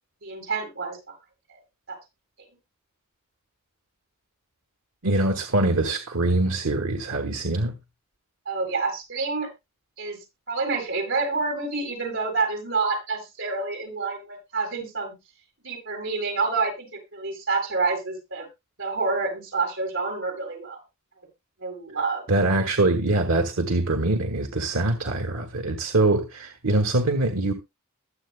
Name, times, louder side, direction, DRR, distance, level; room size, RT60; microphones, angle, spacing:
voice 1, 0.2-1.0 1.5-1.6 1.9-2.0 8.4-9.5 10.0-10.2 10.5-15.1 15.6-18.5 18.8-20.8 21.6-22.2, right 4 dB, 65° right, 8.0 m, -28 dB
voice 2, 5.0-7.7 22.3-27.5, right 2 dB, 85° right, 1.3 m, -23 dB
22.0 x 7.7 x 2.2 m
head